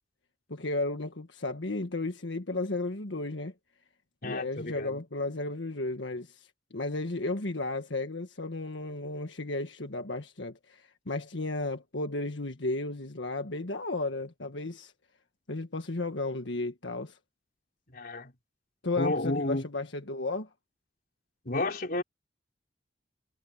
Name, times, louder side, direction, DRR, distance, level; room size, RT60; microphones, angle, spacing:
voice 1, 0.5-3.5 4.2-14.9 15.5-17.2 18.8-20.5, left 2 dB, 85° left, 1.6 m, -34 dB
voice 2, 4.2-5.0 17.9-18.3 19.0-19.6 21.4-22.0, left 2 dB, 55° left, 4.2 m, -31 dB
head